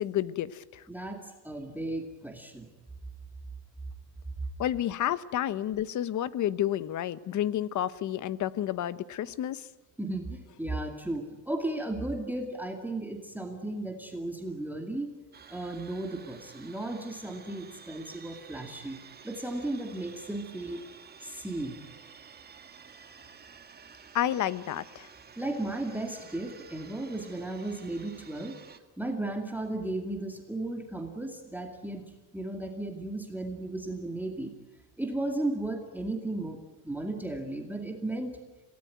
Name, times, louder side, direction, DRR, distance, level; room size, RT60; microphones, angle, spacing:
voice 1, 0.0-0.8 4.6-9.6 24.1-25.1, left 11 dB, 40° left, 16 dB, 1.0 m, -30 dB
voice 2, 0.9-2.7 10.0-15.1 15.5-19.0 19.2-20.8 21.2-21.8 25.4-28.6 29.0-32.0 32.3-34.5 35.0-36.6 36.8-38.4, right 2 dB, 5° right, 2 dB, 2.3 m, -35 dB
sound 1, 15.3-28.8, right 6 dB, 20° right, 1.9 m, -52 dB
27.0 x 18.0 x 9.3 m, 1.2 s
cardioid pair, 145°, 45 cm